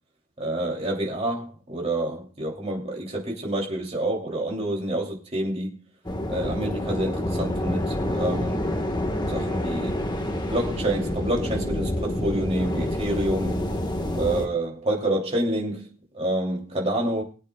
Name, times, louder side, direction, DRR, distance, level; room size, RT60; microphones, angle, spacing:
voice 1, 0.4-5.7 6.3-8.7 9.3-10.0 10.5-13.6 14.1-17.2, right 1 dB, 30° right, 2.8 m, -28 dB
sound 1, 6.0-14.5, left 1 dB, 20° left, 1.4 m, -28 dB
23.5 x 8.2 x 2.3 m
head